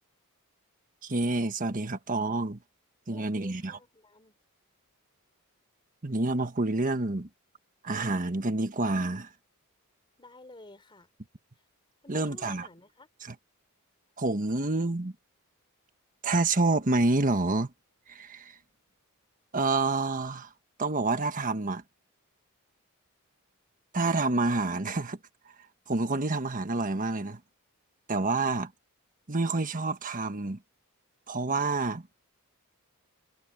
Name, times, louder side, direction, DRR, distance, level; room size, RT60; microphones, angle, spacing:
voice 1, 1.0-2.6 3.1-3.8 6.0-7.3 7.8-9.3 12.1-12.7 13.2-13.3 14.2-15.1 16.2-17.7 18.1-18.5 19.5-20.5 20.8-21.8 23.9-25.2 25.9-27.4 28.1-28.7 29.3-30.6 31.3-32.1, right 2 dB, 40° right, 1.4 m, -28 dB
voice 2, 3.1-4.4 10.2-11.1 12.0-13.1, left 2 dB, 20° left, 3.7 m, -51 dB
head